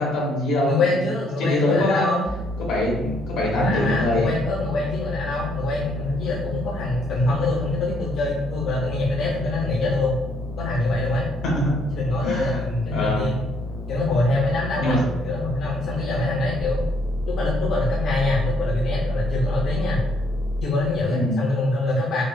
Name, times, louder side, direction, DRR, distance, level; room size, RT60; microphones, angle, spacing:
voice 1, 0.0-0.8 1.4-2.1 2.6-4.3 11.5-11.7 12.2-12.6 12.9-13.3 14.8-15.0 21.1-21.4, left 1 dB, 85° left, -4 dB, 1.5 m, -23 dB
voice 2, 0.6-2.3 3.5-10.2 10.6-11.3 11.9-13.4 13.9-16.8 17.2-20.0 20.6-22.2, left 2 dB, 65° left, -5 dB, 0.6 m, -24 dB
sound 1, 2.3-20.6, left 1 dB, 15° left, 0.5 m, -30 dB
4.7 x 2.2 x 2.6 m, 0.95 s
cardioid pair, 130°, 0 cm